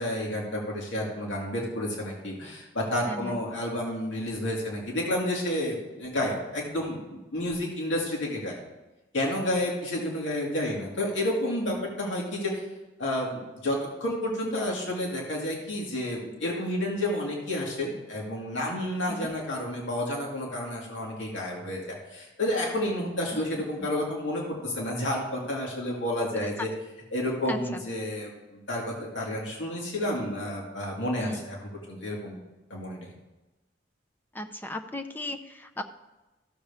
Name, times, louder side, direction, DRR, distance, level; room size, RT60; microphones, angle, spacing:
voice 1, 0.0-8.6 9.1-12.6 13.0-26.7 27.1-32.4 32.7-33.1, left 1 dB, 75° left, -2 dB, 2.3 m, -30 dB
voice 2, 27.5-27.8 31.2-31.4 34.3-35.8, left 1 dB, 10° left, 7 dB, 0.5 m, -35 dB
14.5 x 7.0 x 3.5 m, 1.1 s
head